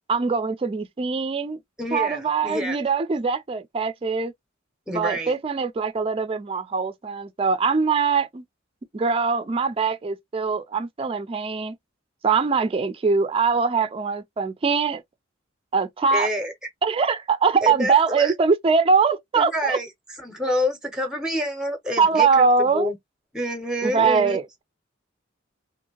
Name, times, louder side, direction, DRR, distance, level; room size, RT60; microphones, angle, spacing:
voice 1, 0.1-1.6 1.9-4.3 4.9-8.4 8.9-11.8 12.2-15.0 15.7-16.3 16.8-19.8 22.0-22.9 23.8-24.6, right 5 dB, 30° right, 0.4 m, -22 dB
voice 2, 1.8-2.8 4.9-5.3 16.1-16.5 17.6-18.3 19.3-19.9 20.2-23.0 23.3-24.4, equal, 5° right, 0.7 m, -27 dB
2.7 x 2.5 x 2.7 m
head